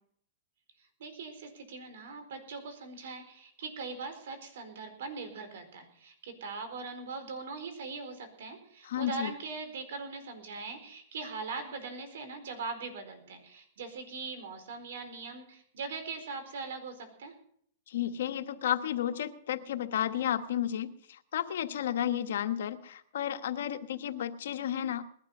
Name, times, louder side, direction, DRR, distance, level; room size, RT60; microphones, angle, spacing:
voice 1, 0.8-17.3, right 4 dB, 75° right, 8 dB, 4.4 m, -41 dB
voice 2, 8.8-9.3 17.9-25.0, left 10 dB, 75° left, 8 dB, 1.3 m, -32 dB
19.5 x 12.0 x 5.5 m, 0.65 s
hypercardioid pair, 140°, 0 cm